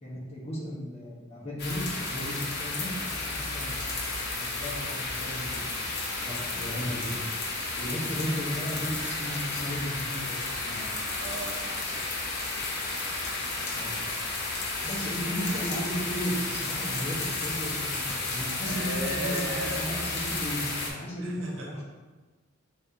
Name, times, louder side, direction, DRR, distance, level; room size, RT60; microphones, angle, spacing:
voice 1, 0.0-3.8 4.3-5.9 6.2-7.2 7.8-10.9 13.7-13.9 14.8-21.8, equal, 35° left, -4 dB, 1.0 m, -35 dB
sound 1, 1.6-20.9, left 3 dB, 60° left, 0.9 m, -32 dB
voice 2, 11.2-12.2 18.6-19.9 21.2-21.8, right 1 dB, 85° right, -2 dB, 0.9 m, -37 dB
5.3 x 3.5 x 2.7 m, 1.3 s
head